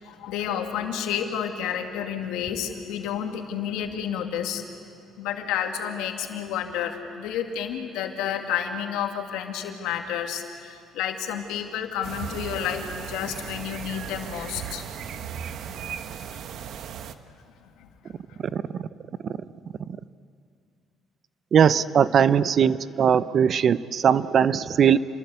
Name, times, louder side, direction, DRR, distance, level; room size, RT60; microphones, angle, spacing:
voice 1, 0.0-4.6 5.2-15.0 17.6-17.9 18.3-18.4, left 9 dB, 90° left, 4 dB, 2.4 m, -30 dB
sound 1, 12.0-17.2, right 8 dB, 65° right, 1.2 m, -36 dB
voice 2, 21.5-25.0, right 8 dB, 50° right, 16 dB, 0.7 m, -20 dB
29.0 x 22.5 x 8.3 m, 2.4 s
cardioid pair, 100°, 0 cm